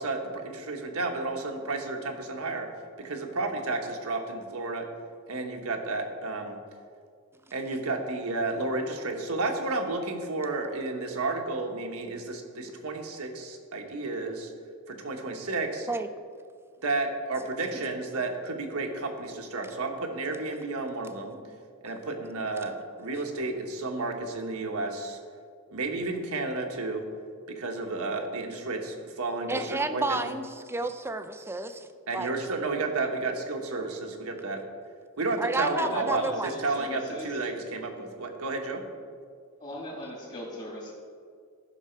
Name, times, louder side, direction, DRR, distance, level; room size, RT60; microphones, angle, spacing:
voice 1, 0.0-2.7 3.0-4.9 5.3-6.6 7.5-14.5 14.9-15.9 16.8-21.4 21.8-25.2 25.7-27.0 27.5-30.2 32.1-34.6 35.2-38.8, right 3 dB, 75° right, 3 dB, 1.4 m, -32 dB
voice 2, 29.5-31.9 32.1-32.3 35.4-36.5, right 2 dB, 10° right, 9 dB, 0.5 m, -31 dB
voice 3, 35.6-37.4 39.6-40.9, left 1 dB, 35° left, -3 dB, 2.4 m, -38 dB
14.5 x 6.2 x 4.6 m, 2.2 s
head